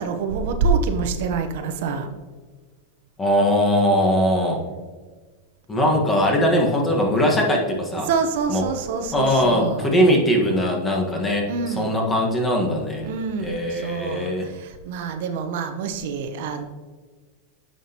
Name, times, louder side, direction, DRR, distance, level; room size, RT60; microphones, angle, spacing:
voice 1, 0.0-2.1 8.0-9.9 11.5-11.9 13.0-16.6, right 5 dB, 65° right, 6 dB, 0.9 m, -26 dB
voice 2, 3.2-4.6 5.7-8.1 8.5-8.6 9.1-13.1 13.4-14.5, equal, 15° left, 0 dB, 1.4 m, -20 dB
9.1 x 6.0 x 2.9 m, 1.4 s
supercardioid pair, 145°, 0 cm